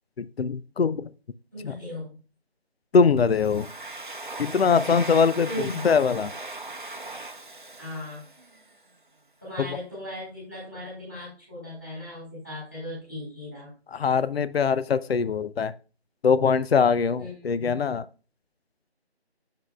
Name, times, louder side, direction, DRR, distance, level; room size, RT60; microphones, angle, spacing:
voice 1, 0.2-1.1 1.6-1.7 2.9-3.7 4.4-6.3 9.6-9.7 13.9-15.7 16.2-18.0, left 5 dB, 70° left, 15 dB, 0.5 m, -22 dB
voice 2, 1.5-2.1 5.5-5.9 7.8-8.2 9.4-13.7 17.2-17.8, left 1 dB, 10° left, -9 dB, 3.4 m, -37 dB
Domestic sounds home sounds, 3.2-8.8, right 2 dB, 50° right, 0.7 m, -39 dB
7.9 x 6.6 x 2.3 m, 0.35 s
figure-of-eight pair, 175°, 32 cm